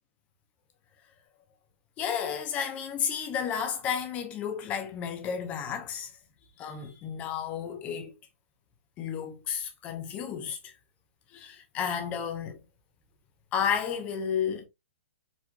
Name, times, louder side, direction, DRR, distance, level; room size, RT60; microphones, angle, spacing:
voice 1, 2.0-6.1 6.6-8.1 9.0-10.7 11.3-12.6 13.5-14.7, left 7 dB, 20° left, 0.8 m, -32 dB
4.4 x 4.2 x 2.2 m
hypercardioid pair, 160°, 7 cm